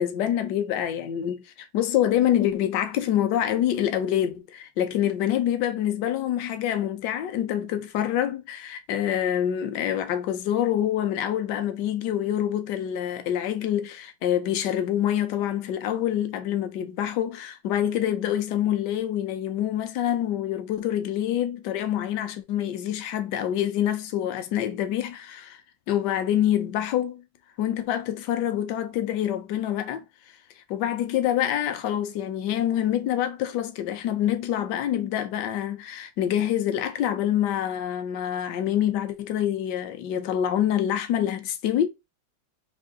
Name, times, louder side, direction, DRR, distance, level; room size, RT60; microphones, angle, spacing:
voice 1, 0.0-1.4 1.7-25.6 25.9-27.2 27.6-30.0 30.7-41.9, left 11 dB, 70° left, 1.1 m, -26 dB
3.6 x 2.6 x 3.6 m
omnidirectional pair, 2.2 m